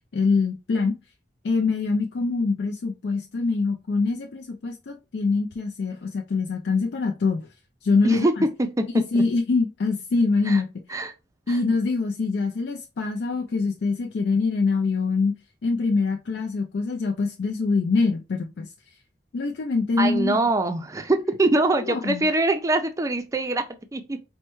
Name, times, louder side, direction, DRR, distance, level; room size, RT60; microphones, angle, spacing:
voice 1, 0.1-1.0 1.4-7.5 7.8-8.4 8.9-10.7 11.5-15.3 15.6-18.7 19.3-20.4 21.9-22.3, left 4 dB, 70° left, 0.4 m, -24 dB
voice 2, 8.0-9.2 10.5-10.6 10.9-11.1 20.0-24.2, right 2 dB, 20° right, 0.4 m, -24 dB
4.4 x 2.1 x 3.0 m
head